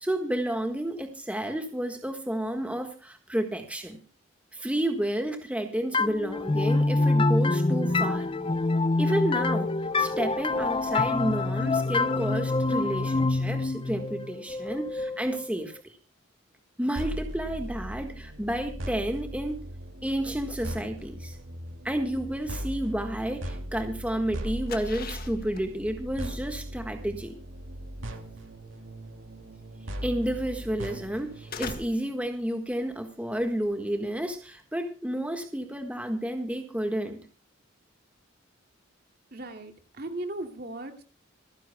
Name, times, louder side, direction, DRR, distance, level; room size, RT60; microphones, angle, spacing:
voice 1, 0.0-4.0 4.5-8.3 9.0-9.7 10.0-16.0 16.8-19.6 20.0-21.4 21.8-27.3 30.0-37.2, right 1 dB, 5° right, 5 dB, 1.5 m, -31 dB
sound 1, 5.9-15.5, left 3 dB, 25° left, 0.7 m, -26 dB
sound 2, 17.0-31.7, equal, 75° right, 2.5 m, -38 dB
sound 3, 24.2-34.6, left 5 dB, 50° left, 1.7 m, -45 dB
voice 2, 39.3-41.0, right 2 dB, 50° right, 5 dB, 2.5 m, -37 dB
26.5 x 10.5 x 2.3 m, 0.37 s
head